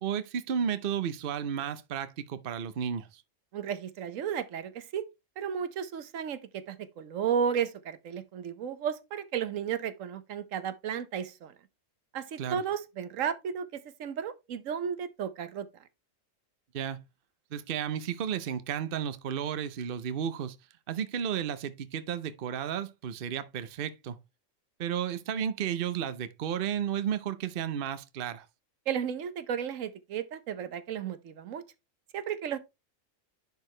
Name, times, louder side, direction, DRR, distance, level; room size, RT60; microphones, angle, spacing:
voice 1, 0.0-3.2 12.4-12.6 16.7-17.0 17.5-20.6 20.9-24.2 24.8-28.5, right 8 dB, 50° right, 0.8 m, -33 dB
voice 2, 3.5-5.0 5.4-11.5 12.1-15.7 28.9-31.6 32.1-32.6, right 8 dB, 80° right, 1.1 m, -33 dB
10.5 x 4.6 x 3.2 m
omnidirectional pair, 1.3 m